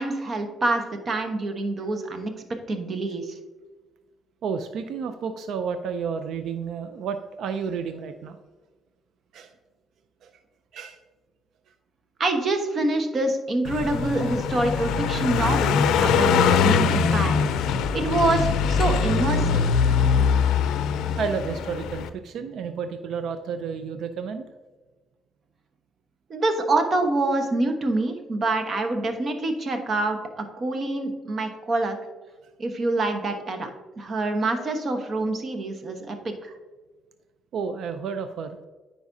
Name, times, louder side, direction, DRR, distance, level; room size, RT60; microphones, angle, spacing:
voice 1, 0.0-2.3 2.7-3.4 12.2-19.7 26.3-32.0 32.6-33.7 34.0-36.5, right 2 dB, 45° right, 6 dB, 1.1 m, -26 dB
voice 2, 4.4-8.4 9.3-9.5 10.2-10.3 10.7-11.0 15.3-15.4 21.2-24.4 37.5-38.6, right 6 dB, 75° right, 8 dB, 0.4 m, -31 dB
Car passing by, 13.6-22.1, left 6 dB, 90° left, 0.4 m, -22 dB
9.6 x 5.0 x 2.7 m, 1.3 s
cardioid pair, 90°, 0 cm